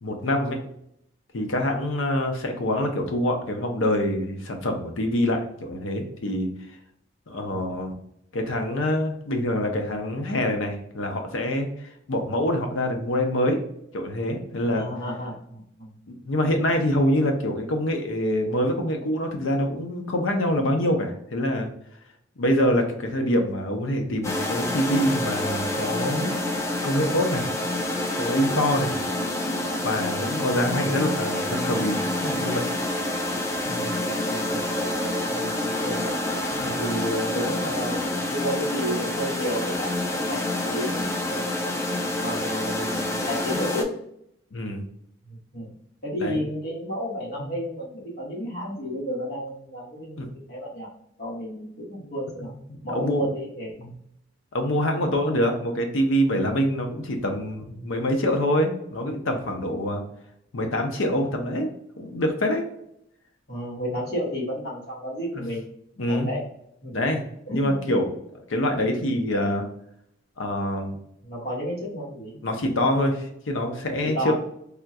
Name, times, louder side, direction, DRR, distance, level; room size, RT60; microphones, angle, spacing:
voice 1, 0.0-0.6 1.3-6.5 7.3-8.0 8.3-13.6 13.9-14.9 16.1-21.7 22.4-26.4 26.8-27.5 28.2-28.9 29.8-32.7 36.5-36.7 44.5-44.8 46.2-46.4 47.4-47.5 50.2-50.3 52.7-53.3 53.8-53.9 54.5-60.0 60.5-61.7 62.0-62.7 65.3-65.5 66.0-66.3 66.9-67.2 67.5-68.1 68.5-69.7 70.4-71.0 72.4-74.3, left 1 dB, 80° left, 4 dB, 0.7 m, -25 dB
voice 2, 14.7-15.9 33.6-34.6 34.9-35.0 35.3-36.2 36.6-41.6 42.2-43.9 45.3-45.8 46.0-50.2 50.5-50.9 51.2-52.5 52.8-53.8 63.5-65.6 66.1-66.5 66.8-66.9 67.5-67.9 71.2-72.4 74.0-74.3, equal, 50° left, -4 dB, 1.3 m, -32 dB
sound 1, 24.2-43.8, left 1 dB, 15° left, 0.3 m, -27 dB
3.5 x 2.3 x 2.6 m, 0.74 s
head